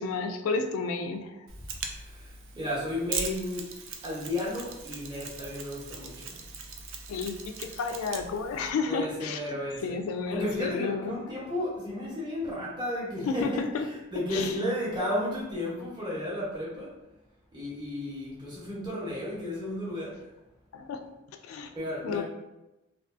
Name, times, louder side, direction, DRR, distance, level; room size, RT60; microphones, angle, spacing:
voice 1, 0.0-1.5 7.1-11.2 13.3-13.8 14.3-14.6 20.7-21.0 21.4-21.7 22.0-22.2, left 4 dB, 75° left, 7 dB, 0.3 m, -32 dB
Mechanisms, 1.5-8.7, right 5 dB, 65° right, 0.4 m, -40 dB
voice 2, 2.5-3.6 4.0-6.4 8.9-10.0 10.3-16.9 17.5-20.1 21.7-22.2, left 1 dB, 20° right, -6 dB, 0.7 m, -33 dB
2.5 x 2.3 x 2.3 m, 0.98 s
head